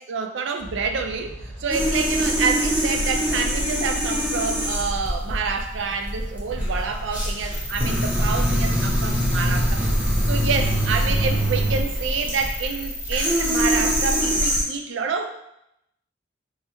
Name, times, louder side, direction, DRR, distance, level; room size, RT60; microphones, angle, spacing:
voice 1, 0.0-9.9 10.3-15.3, right 5 dB, 65° right, 5 dB, 0.3 m, -28 dB
sound 1, 0.6-11.3, equal, 50° left, 1.0 m, -39 dB
sound 2, 1.7-14.6, equal, 10° right, 0.5 m, -24 dB
sound 3, 7.5-14.2, equal, 90° right, 1.0 m, -33 dB
3.4 x 2.1 x 3.0 m, 0.81 s
head